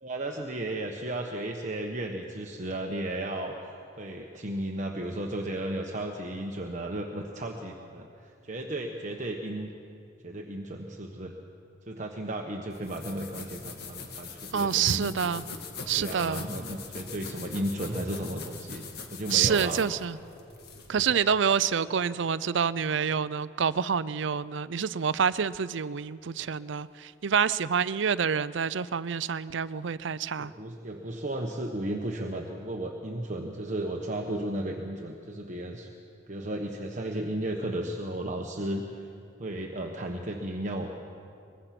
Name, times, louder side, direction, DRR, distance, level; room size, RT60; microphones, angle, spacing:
voice 1, 0.0-9.7 10.2-11.3 11.9-15.1 16.0-19.8 30.4-35.9 36.3-38.8 39.4-40.9, right 1 dB, 40° right, 1 dB, 1.2 m, -34 dB
sound 1, 12.7-21.0, left 4 dB, 55° left, 2.0 m, -42 dB
voice 2, 14.5-15.4 15.9-16.5 19.3-20.2 20.9-30.5, right 7 dB, 65° right, 17 dB, 0.5 m, -27 dB
23.5 x 21.5 x 6.0 m, 2.5 s
head